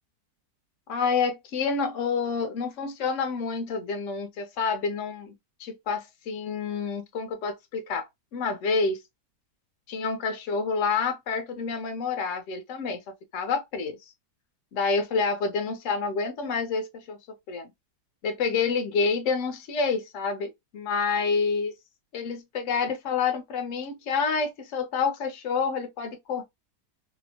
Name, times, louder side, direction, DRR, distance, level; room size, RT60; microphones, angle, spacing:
voice 1, 0.9-5.3 5.6-9.0 9.9-14.0 14.7-17.2 17.5-17.7 18.2-21.7 22.1-26.4, left 5 dB, 60° left, 0.9 m, -28 dB
2.9 x 2.0 x 2.7 m
omnidirectional pair, 1.8 m